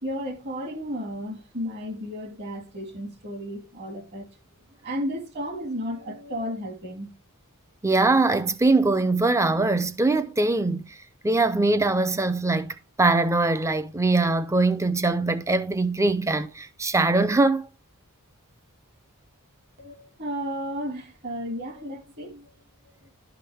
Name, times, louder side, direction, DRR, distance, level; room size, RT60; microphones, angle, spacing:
voice 1, 0.0-4.3 4.8-7.1 19.8-22.5 22.8-23.1, equal, 50° right, 2.1 m, -33 dB
voice 2, 7.8-11.0 11.2-17.7, right 2 dB, 15° right, 0.6 m, -22 dB
11.0 x 5.9 x 3.5 m
head